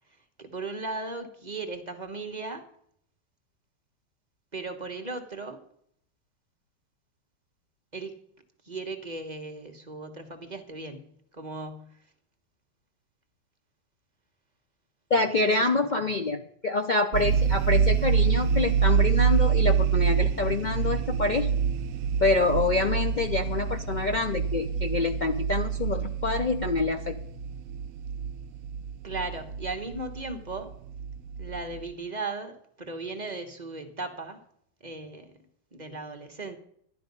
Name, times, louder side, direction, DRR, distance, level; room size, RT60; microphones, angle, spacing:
voice 1, 0.1-2.6 4.5-5.6 7.9-8.2 8.6-12.0 15.4-15.8 29.0-30.7 31.4-34.4 34.8-36.6, right 3 dB, 30° right, 1.2 m, -37 dB
voice 2, 15.1-21.5 22.2-27.2, left 3 dB, 70° left, 0.4 m, -26 dB
sound 1, 17.1-31.8, right 7 dB, 65° right, 0.9 m, -26 dB
12.0 x 11.0 x 5.3 m
omnidirectional pair, 1.9 m